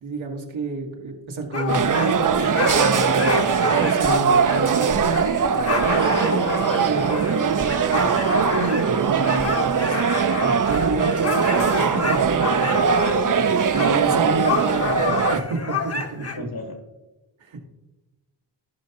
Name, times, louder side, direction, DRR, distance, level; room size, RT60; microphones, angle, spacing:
voice 1, 0.0-5.3 5.8-10.0 10.4-16.5 17.4-17.6, right 3 dB, 85° right, 0 dB, 1.8 m, -29 dB
sound 1, 1.5-13.4 13.7-13.9 14.4-16.4, left 3 dB, 30° left, 1.0 m, -28 dB
sound 2, 1.7-15.4, right 6 dB, 45° right, 0.6 m, -21 dB
sound 3, 2.3-10.6, right 1 dB, 10° right, 0.8 m, -41 dB
voice 2, 13.0-13.4 14.4-14.6 16.2-16.8, left 2 dB, 50° left, 4 dB, 1.6 m, -37 dB
15.5 x 5.6 x 2.9 m, 1.1 s
cardioid pair, 65°, 45 cm